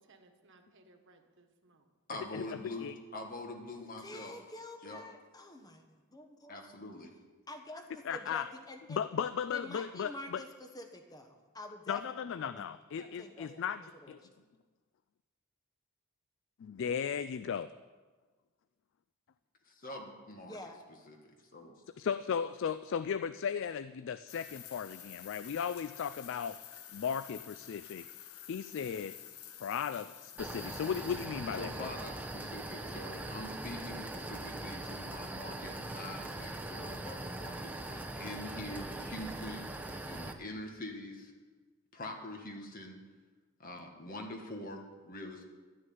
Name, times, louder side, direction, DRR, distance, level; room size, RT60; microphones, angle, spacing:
voice 1, 0.0-1.9 13.0-13.4, right 2 dB, 55° right, 5 dB, 1.3 m, -62 dB
voice 2, 2.1-4.4 4.8-5.0 6.5-7.1 19.7-20.6 21.1-21.8 31.5-39.7 40.1-41.3 41.9-43.0 43.6-45.5, left 1 dB, 40° left, 3 dB, 1.7 m, -44 dB
voice 3, 4.0-5.8 6.1-6.6 7.5-12.6 13.2-14.5 20.4-20.8, left 1 dB, 15° left, 5 dB, 1.1 m, -48 dB
voice 4, 8.1-8.5 8.9-10.4 11.9-13.8 14.1-14.2 16.6-17.7 22.0-26.6 26.9-28.1 28.5-29.1 29.6-31.9, left 7 dB, 55° left, 13 dB, 0.3 m, -36 dB
sound 1, 24.3-31.3, left 10 dB, 80° left, 0.9 m, -50 dB
sound 2, 30.4-40.3, right 2 dB, 5° right, 0.7 m, -41 dB
12.5 x 6.4 x 9.3 m, 1.4 s
head